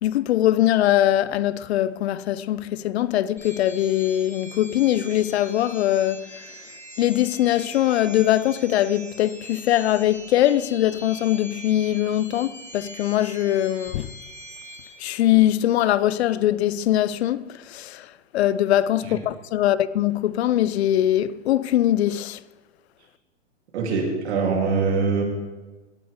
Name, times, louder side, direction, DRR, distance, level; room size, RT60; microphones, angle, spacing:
voice 1, 0.0-6.4 7.0-14.1 15.0-22.4, left 13 dB, 60° left, 0.6 m, -22 dB
sound 1, 3.4-14.9, equal, 5° left, 4.1 m, -42 dB
voice 2, 23.7-25.2, right 4 dB, 60° right, 3.4 m, -23 dB
17.5 x 8.6 x 3.6 m
hypercardioid pair, 125°, 37 cm